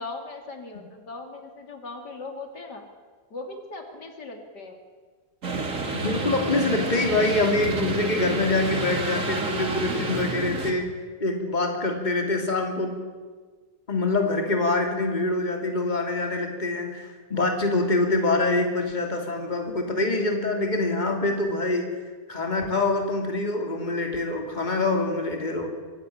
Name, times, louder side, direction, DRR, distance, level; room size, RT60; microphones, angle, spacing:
voice 1, 0.0-2.8 3.3-4.8, left 3 dB, 75° left, 4 dB, 3.5 m, -39 dB
sound 1, 5.4-10.7, right 3 dB, 50° right, 2.9 m, -29 dB
voice 2, 6.0-10.9 11.2-13.0 13.9-21.9 22.3-25.7, left 2 dB, 25° left, 3 dB, 3.0 m, -25 dB
24.5 x 15.5 x 9.9 m, 1.5 s
omnidirectional pair, 1.8 m